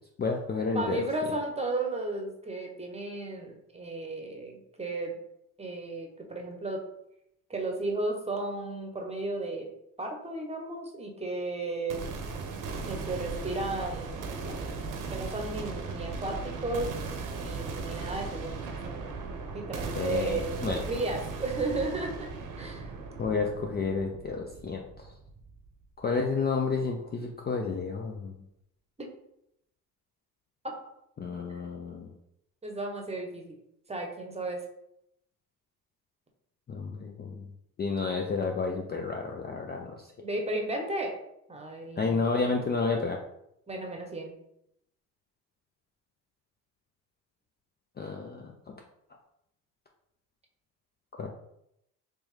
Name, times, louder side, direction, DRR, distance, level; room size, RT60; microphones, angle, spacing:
voice 1, 0.2-1.1 20.0-20.8 23.2-25.1 26.0-28.3 31.2-32.1 36.7-37.4 37.8-40.1 42.0-43.2 48.0-48.7 51.1-51.3, left 4 dB, 25° left, 1 dB, 0.4 m, -31 dB
voice 2, 0.7-5.2 5.6-6.8 7.5-9.7 10.0-12.1 12.8-14.7 15.1-16.9 17.4-19.2 19.5-22.3 22.5-22.9 32.6-33.5 33.9-34.6 40.2-41.2 41.5-42.2 43.7-44.3, right 2 dB, 15° right, 2 dB, 0.9 m, -34 dB
sound 1, 11.9-25.8, right 4 dB, 55° right, 0.8 m, -37 dB
3.4 x 3.0 x 3.2 m, 0.79 s
supercardioid pair, 80°, 37 cm